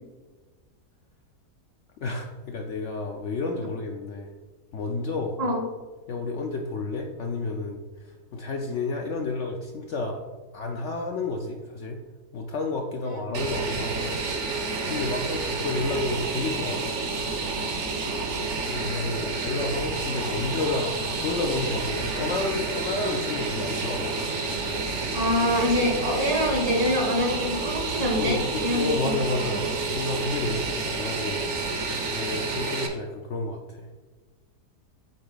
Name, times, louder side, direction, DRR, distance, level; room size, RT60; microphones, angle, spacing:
voice 1, 2.0-4.3 4.7-5.5 6.1-10.2 10.5-12.0 12.3-14.1 14.4-17.0 18.7-24.1 28.1-31.6 32.0-34.1, left 3 dB, 65° left, 3 dB, 0.7 m, -31 dB
Fixed-wing aircraft airplane, 13.3-32.9, right 3 dB, 55° right, 1.0 m, -29 dB
voice 2, 25.1-29.6, equal, 75° right, 1 dB, 1.9 m, -25 dB
7.8 x 3.7 x 3.9 m, 1.3 s
omnidirectional pair, 1.7 m